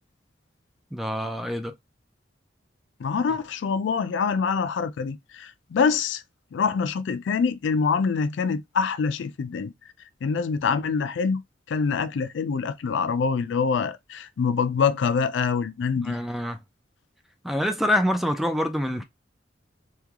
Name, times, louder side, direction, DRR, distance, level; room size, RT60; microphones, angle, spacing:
voice 1, 0.9-1.7 16.0-16.6 17.4-19.0, left 1 dB, ahead, 0.3 m, -26 dB
voice 2, 3.0-6.2 6.5-9.7 10.2-11.4 11.7-16.2, left 5 dB, 75° left, 0.4 m, -25 dB
3.1 x 2.2 x 3.5 m
head